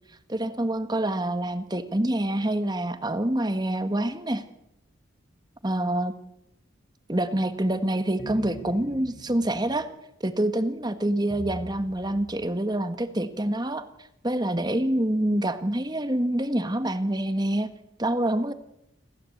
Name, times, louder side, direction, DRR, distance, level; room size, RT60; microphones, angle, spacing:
voice 1, 0.3-4.4 5.6-6.1 7.1-9.9 10.2-13.8 14.2-17.7 18.0-18.5, right 1 dB, 20° right, 10 dB, 1.3 m, -26 dB
sound 1, 8.2-9.8 11.3-12.6, left 1 dB, 40° left, 3.9 m, -42 dB
27.0 x 15.5 x 8.4 m, 0.84 s
head